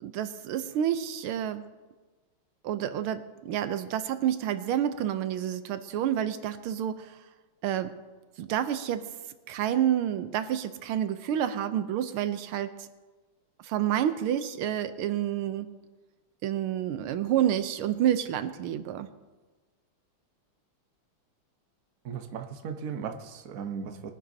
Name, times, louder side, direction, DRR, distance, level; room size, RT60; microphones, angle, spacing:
voice 1, 0.0-1.7 2.6-7.2 7.6-8.0 8.4-9.1 9.5-12.9 13.6-15.7 16.4-19.1, right 10 dB, 85° right, 11 dB, 1.6 m, -29 dB
voice 2, 22.0-24.1, right 7 dB, 50° right, 6 dB, 1.1 m, -36 dB
22.0 x 10.5 x 2.7 m, 1.3 s
omnidirectional pair, 2.3 m